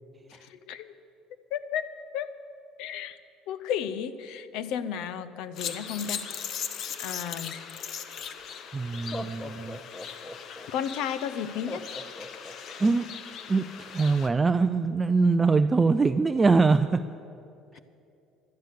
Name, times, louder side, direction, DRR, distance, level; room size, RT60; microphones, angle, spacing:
voice 1, 0.3-0.9 1.5-2.3 2.8-3.2 3.5-6.3 7.0-7.5 10.7-11.9 17.7-17.8, left 8 dB, 75° left, 14 dB, 0.7 m, -33 dB
sound 1, 5.6-14.3, left 7 dB, 50° left, 0.9 m, -39 dB
Laughter, 8.2-8.3 9.0-10.7 11.7-12.9, left 2 dB, 15° left, 0.7 m, -40 dB
voice 2, 8.7-9.8 12.8-13.2 13.5-17.1, right 4 dB, 20° right, 10 dB, 0.3 m, -23 dB
16.0 x 12.0 x 6.7 m, 2.6 s
cardioid pair, 135°, 0 cm